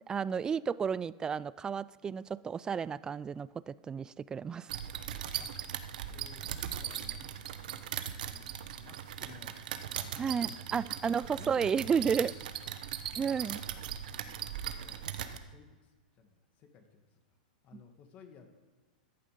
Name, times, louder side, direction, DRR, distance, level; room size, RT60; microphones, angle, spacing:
voice 1, 0.1-4.7 10.2-12.3 13.2-13.6, right 6 dB, 15° right, 19 dB, 0.3 m, -32 dB
sound 1, 4.7-15.4, right 10 dB, 70° right, 1.0 m, -39 dB
voice 2, 6.1-6.5 6.8-7.4 7.7-9.6 9.9-12.4 13.2-13.7 14.1-17.0 17.6-18.5, left 6 dB, 35° left, 5 dB, 2.0 m, -56 dB
14.5 x 11.0 x 5.1 m, 1.3 s
hypercardioid pair, 135°, 5 cm